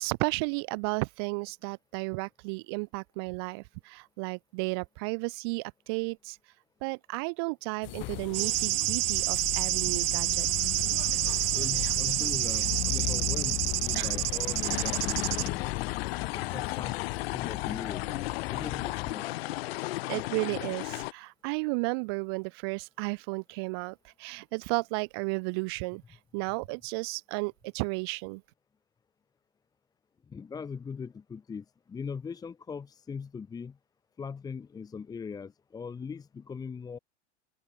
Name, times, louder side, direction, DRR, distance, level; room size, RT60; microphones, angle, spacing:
voice 1, 0.0-6.4 6.8-10.5 13.9-14.1 20.1-26.0 26.3-28.4, right 30 dB, 25° right, 0.4 m, -33 dB
sound 1, 7.8-19.1, left 23 dB, 30° left, 1.6 m, -36 dB
sound 2, 8.3-15.5, right 19 dB, 55° right, 0.8 m, -28 dB
voice 2, 11.5-15.7 16.3-17.0 17.3-19.5 30.3-33.8 34.2-37.0, left 6 dB, 10° left, 1.6 m, -40 dB
sound 3, 14.6-21.1, left 19 dB, 55° left, 1.8 m, -35 dB
open air
supercardioid pair, 165°, 36 cm